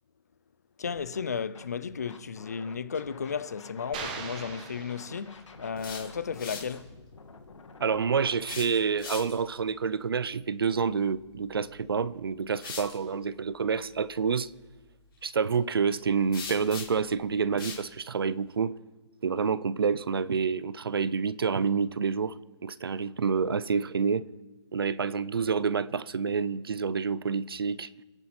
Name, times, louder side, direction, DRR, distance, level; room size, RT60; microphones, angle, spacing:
Scratching (performance technique), 0.8-1.2 1.5-4.1 4.4-8.6, left 4 dB, 75° left, 2.1 m, -50 dB
voice 1, 0.8-6.9, left 6 dB, 35° left, 0.4 m, -34 dB
sound 1, 3.9-5.7, right 5 dB, 15° right, 1.0 m, -40 dB
sound 2, 5.6-6.8 8.4-9.5 11.6-11.8 12.5-13.0 16.3-17.1 17.6-17.9, left 5 dB, 50° left, 4.1 m, -40 dB
voice 2, 7.8-14.5 15.2-18.8 19.2-24.3 24.7-28.0, right 5 dB, 50° right, 0.5 m, -28 dB
26.5 x 10.5 x 4.3 m
hypercardioid pair, 180°, 16 cm